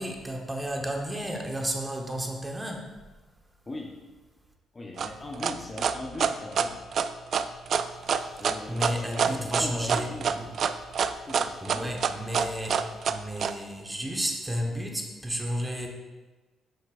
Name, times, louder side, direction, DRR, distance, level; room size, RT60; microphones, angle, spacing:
voice 1, 0.0-2.9 8.1-8.4 8.7-10.5 11.6-12.8 13.1-15.9, equal, 10° right, 1 dB, 1.1 m, -32 dB
voice 2, 3.7-4.0 4.7-6.9 8.4-10.5 11.2-12.0, left 2 dB, 25° left, 1 dB, 0.8 m, -39 dB
sound 1, 5.0-13.5, right 7 dB, 55° right, 0.3 m, -26 dB
8.2 x 6.5 x 2.5 m, 1.2 s
cardioid pair, 90°, 0 cm